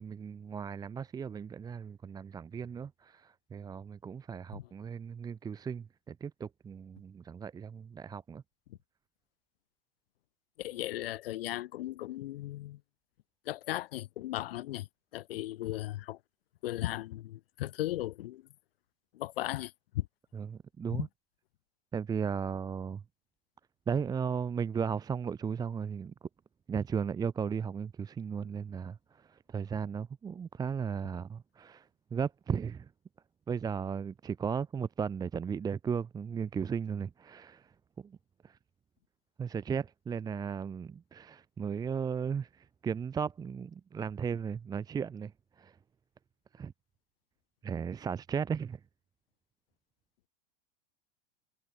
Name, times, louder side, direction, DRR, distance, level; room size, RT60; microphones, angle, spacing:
voice 1, 0.0-8.4 20.3-21.1 21.9-23.0 23.9-26.1 26.7-32.9 33.5-37.7 38.0-38.1 38.4-38.6 39.4-45.3 45.6-45.7 46.5-46.7 47.6-48.8, right 6 dB, 15° right, 1.3 m, -36 dB
voice 2, 10.6-12.8 13.5-14.9 15.1-16.2 16.6-18.4 19.1-20.1 20.9-21.0, left 15 dB, 70° left, 5.7 m, -36 dB
supercardioid pair, 165°, 30 cm